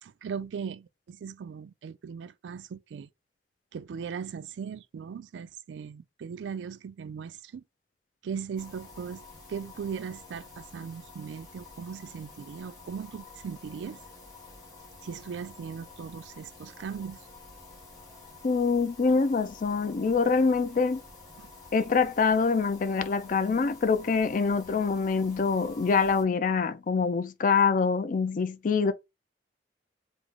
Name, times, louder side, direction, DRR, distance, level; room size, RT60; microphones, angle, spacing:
voice 1, 0.0-3.1 3.7-7.6 8.2-9.2 9.5-14.0 15.0-17.3 21.4-21.5, right 6 dB, 90° right, 0.3 m, -38 dB
sound 1, 8.6-26.2, left 3 dB, 20° left, 1.5 m, -50 dB
voice 2, 18.4-21.0 21.7-28.9, left 5 dB, 50° left, 0.4 m, -25 dB
3.5 x 2.1 x 3.6 m
head